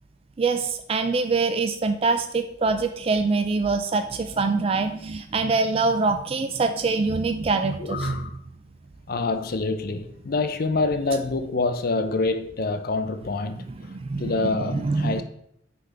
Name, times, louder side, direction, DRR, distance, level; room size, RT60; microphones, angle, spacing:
voice 1, 0.4-8.3 13.7-15.2, right 3 dB, 30° right, 0.3 m, -24 dB
voice 2, 7.8-8.3 9.1-13.6 14.2-15.2, left 3 dB, 50° left, 0.5 m, -26 dB
9.2 x 3.5 x 3.3 m
head